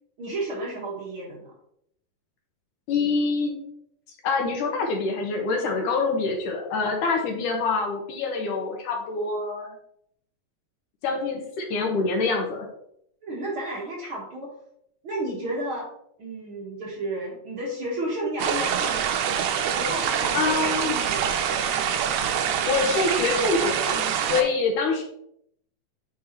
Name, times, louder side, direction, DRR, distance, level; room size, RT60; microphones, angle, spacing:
voice 1, 0.2-1.5 13.2-14.5 15.0-15.9 16.2-19.3 19.7-21.4, right 1 dB, 50° right, -4 dB, 1.9 m, -32 dB
voice 2, 2.9-3.5 4.2-9.7 11.0-12.7 20.3-20.9 22.7-25.0, left 4 dB, 70° left, 2 dB, 2.6 m, -25 dB
sound 1, 18.4-24.4, right 8 dB, 75° right, 2.0 m, -25 dB
8.9 x 5.5 x 3.0 m, 0.71 s
omnidirectional pair, 4.0 m